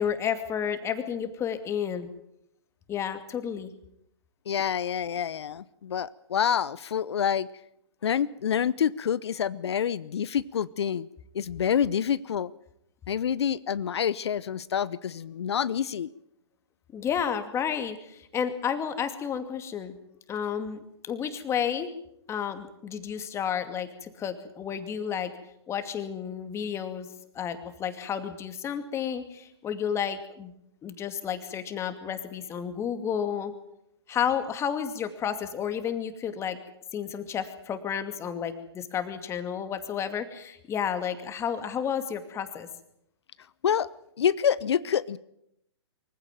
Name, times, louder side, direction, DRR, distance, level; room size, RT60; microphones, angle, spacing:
voice 1, 0.0-2.1 2.9-3.7 16.9-19.9 20.3-21.9 22.3-25.3 25.7-27.1 27.3-30.5 30.8-33.5 34.1-36.6 36.9-42.7, left 8 dB, 20° left, 9 dB, 2.4 m, -31 dB
voice 2, 4.5-7.5 8.0-11.1 11.3-12.5 13.1-16.1 43.6-43.9 44.2-45.2, left 8 dB, 65° left, 18 dB, 0.8 m, -27 dB
24.0 x 15.5 x 9.2 m, 0.79 s
hypercardioid pair, 125°, 15 cm